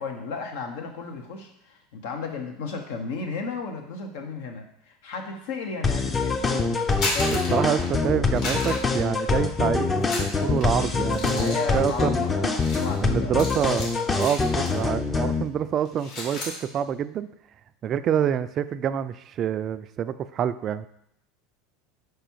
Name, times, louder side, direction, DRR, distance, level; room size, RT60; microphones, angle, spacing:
voice 1, 0.0-6.8 7.1-7.7 11.3-13.3, left 4 dB, 75° left, 4 dB, 1.0 m, -34 dB
sound 1, 5.8-15.4, left 4 dB, 25° left, 0.6 m, -25 dB
sound 2, 6.8-8.0 8.4-9.6 10.0-14.9 15.2-15.5 15.8-16.6, left 2 dB, 55° left, 2.5 m, -34 dB
voice 2, 7.5-12.5 13.0-17.3 17.8-20.9, right 9 dB, 40° right, 13 dB, 0.3 m, -27 dB
5.0 x 4.8 x 4.6 m, 0.73 s
hypercardioid pair, 90°, 0 cm